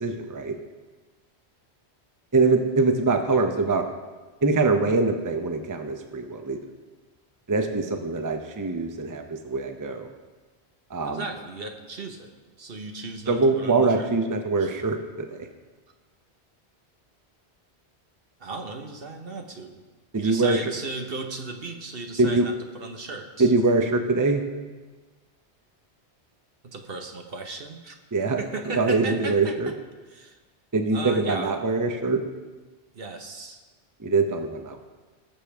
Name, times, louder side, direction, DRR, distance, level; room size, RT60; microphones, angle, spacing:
voice 1, 0.0-0.6 2.3-3.8 4.4-6.6 7.5-10.1 10.9-11.2 13.3-15.5 20.1-20.7 22.2-22.5 23.4-24.4 28.1-28.4 28.7-29.7 30.7-32.2 34.0-34.8, right 3 dB, 20° right, 5 dB, 0.7 m, -23 dB
voice 2, 11.0-12.3 12.6-14.1 14.6-14.8 18.4-19.8 20.1-23.5 26.6-27.9 28.4-29.7 30.1-30.4 30.9-31.5 32.9-33.6, right 3 dB, 60° right, 4 dB, 1.2 m, -36 dB
19.5 x 6.8 x 3.4 m, 1.3 s
omnidirectional pair, 1.1 m